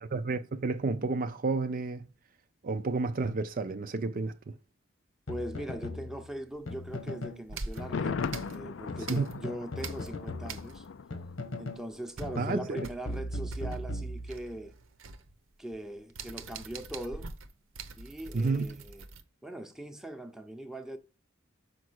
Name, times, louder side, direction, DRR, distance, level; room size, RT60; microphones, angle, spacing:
voice 1, 0.0-2.1 2.6-4.3 9.1-9.3 12.4-12.8 18.3-18.7, right 3 dB, 45° right, 0.4 m, -30 dB
sound 1, 5.3-7.4 7.8-8.5 8.9-11.9 12.2-14.6, left 1 dB, 85° left, 1.3 m, -38 dB
voice 2, 5.3-10.9 11.6-14.7 15.6-17.3 17.9-19.0 19.4-21.0, right 1 dB, 5° right, 0.7 m, -41 dB
sound 2, 6.5-7.1 7.5-9.5 9.8-11.1 11.3-11.4 11.8-19.2, right 4 dB, 90° right, 0.8 m, -44 dB
Thunder, 7.8-11.7 12.0-12.1, left 5 dB, 65° left, 0.4 m, -38 dB
5.9 x 5.2 x 6.3 m
head